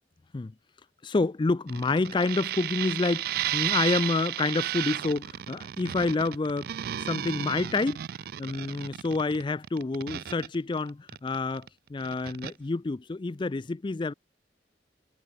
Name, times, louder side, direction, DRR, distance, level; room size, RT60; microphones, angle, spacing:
voice 1, 1.0-8.0 8.4-14.1, left 3 dB, 25° left, 0.4 m, -28 dB
sound 1, 1.7-11.7 12.0-12.5, right 12 dB, 55° right, 0.3 m, -33 dB
head